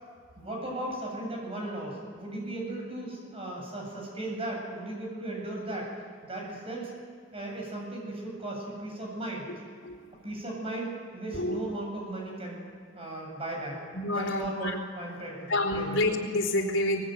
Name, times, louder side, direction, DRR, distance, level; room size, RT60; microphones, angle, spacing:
voice 1, 0.4-5.9 6.2-6.9 7.3-9.4 10.2-12.7 12.9-13.8 14.1-14.7 15.0-16.0, right 1 dB, 30° right, 0 dB, 8.0 m, -36 dB
voice 2, 13.9-14.8 15.5-17.0, left 1 dB, 90° left, 1 dB, 4.0 m, -28 dB
23.5 x 20.5 x 9.4 m, 2.2 s
head